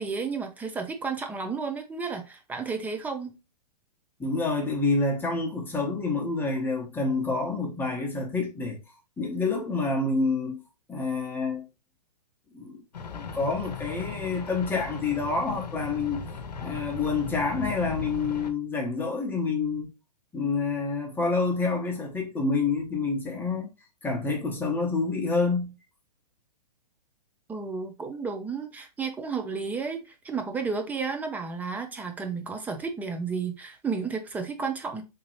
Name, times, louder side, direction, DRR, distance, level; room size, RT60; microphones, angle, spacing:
voice 1, 0.0-3.4 27.5-35.0, right 5 dB, 10° right, 0.4 m, -32 dB
voice 2, 4.2-8.8 9.2-10.6 10.9-11.6 12.5-12.8 13.1-16.2 16.6-19.9 20.3-23.7 24.0-25.7, left 3 dB, 10° left, 0.9 m, -28 dB
sound 1, 12.9-18.5, left 4 dB, 85° left, 0.7 m, -38 dB
3.6 x 2.9 x 3.0 m
hypercardioid pair, 130°, 21 cm